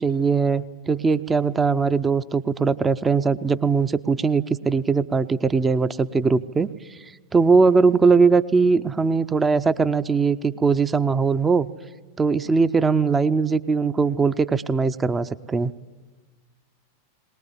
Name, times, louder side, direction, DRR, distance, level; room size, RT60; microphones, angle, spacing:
voice 1, 0.0-7.0 7.3-11.7 12.2-15.7, right 4 dB, 15° right, 14 dB, 0.7 m, -20 dB
21.5 x 19.5 x 10.0 m, 1.2 s
figure-of-eight pair, 90°, 0 cm